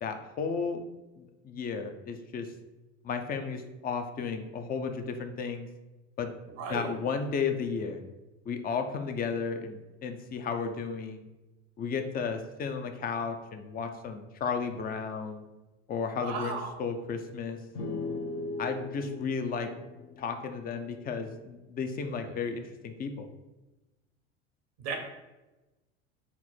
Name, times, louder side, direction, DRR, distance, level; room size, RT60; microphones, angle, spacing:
voice 1, 0.0-0.8 1.2-2.5 3.0-5.7 6.2-6.3 6.7-8.0 8.5-11.2 11.8-15.4 15.9-17.6 18.6-19.7 20.2-23.3, left 5 dB, 25° left, 7 dB, 0.5 m, -33 dB
voice 2, 6.6-6.9 16.2-16.8 22.2-22.3 24.8-25.0, right 4 dB, 70° right, 3 dB, 0.9 m, -35 dB
sound 1, 17.7-21.3, left 3 dB, 65° left, 0.9 m, -38 dB
4.4 x 2.0 x 4.3 m, 1.1 s
hypercardioid pair, 75°, 34 cm